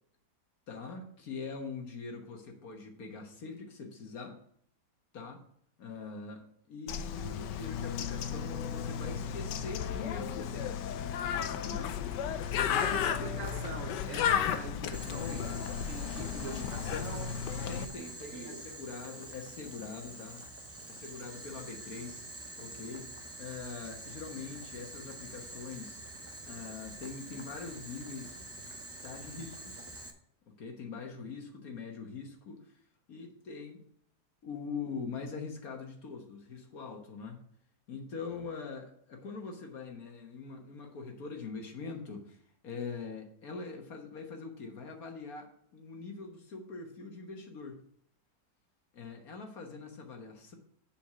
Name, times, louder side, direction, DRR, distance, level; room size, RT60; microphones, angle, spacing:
voice 1, 0.7-4.4 5.1-5.4 5.8-10.8 11.4-12.0 12.4-13.3 17.7-20.4 20.9-22.3 22.6-23.1 23.4-26.0 26.5-28.4 29.0-29.8 30.6-32.7 33.1-33.8 34.4-37.4 37.9-47.8 48.9-50.5, left 4 dB, 60° left, 1.7 m, -43 dB
Bird, 6.9-17.9, left 8 dB, 90° left, 1.3 m, -34 dB
voice 2, 12.7-17.4 18.0-18.6 38.1-38.5, right 4 dB, 60° right, 1.1 m, -43 dB
Boiling, 14.9-30.1, right 2 dB, 20° right, 0.4 m, -46 dB
7.4 x 5.2 x 6.1 m
omnidirectional pair, 1.8 m